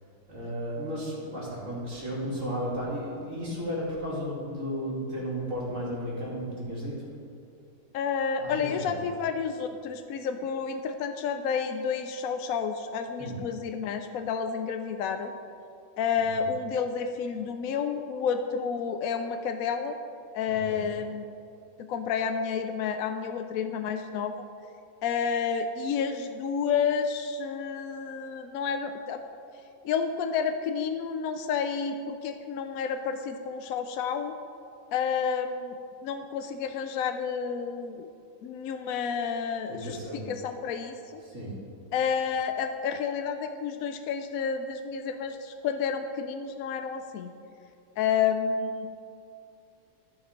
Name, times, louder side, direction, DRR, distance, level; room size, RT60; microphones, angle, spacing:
voice 1, 0.3-6.9 8.4-9.2 13.2-13.4 16.4-16.6 20.4-20.9 39.7-40.3 41.2-41.5, equal, 55° right, -6 dB, 3.0 m, -34 dB
voice 2, 7.9-15.3 16.0-20.0 20.3-21.3 21.8-24.5 25.0-29.2 29.8-34.3 34.9-35.8 36.0-38.1 38.4-40.0 40.3-41.2 41.9-47.3 48.0-49.0, left 6 dB, 75° left, 7 dB, 1.0 m, -30 dB
13.0 x 6.0 x 5.1 m, 2.6 s
omnidirectional pair, 1.5 m